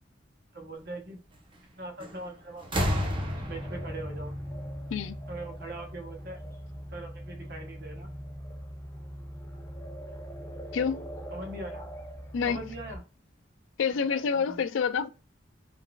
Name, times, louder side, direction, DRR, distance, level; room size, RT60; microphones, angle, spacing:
voice 1, 0.5-1.2 1.8-2.6 2.9-3.0 3.5-4.4 5.3-6.4 6.9-8.1 11.3-11.9 12.4-13.0 13.9-14.6, right 2 dB, 55° right, 0.9 m, -41 dB
sound 1, 2.0-2.3 2.6-5.4 6.5-6.6, equal, 25° right, 0.6 m, -32 dB
sound 2, 2.8-13.0, equal, 15° left, 0.5 m, -41 dB
voice 2, 10.7-11.1 12.3-12.6 13.8-15.1, left 6 dB, 85° left, 0.4 m, -28 dB
3.9 x 2.4 x 2.2 m
head